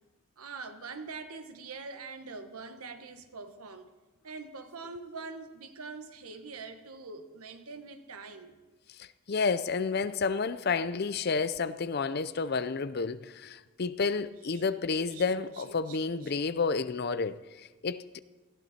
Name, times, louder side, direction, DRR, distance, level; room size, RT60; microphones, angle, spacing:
voice 1, 0.4-3.9 4.2-8.6 14.5-16.5, right 4 dB, 85° right, 1.4 m, -44 dB
voice 2, 9.0-18.0, left 4 dB, 45° left, 0.5 m, -30 dB
19.5 x 14.5 x 4.3 m
head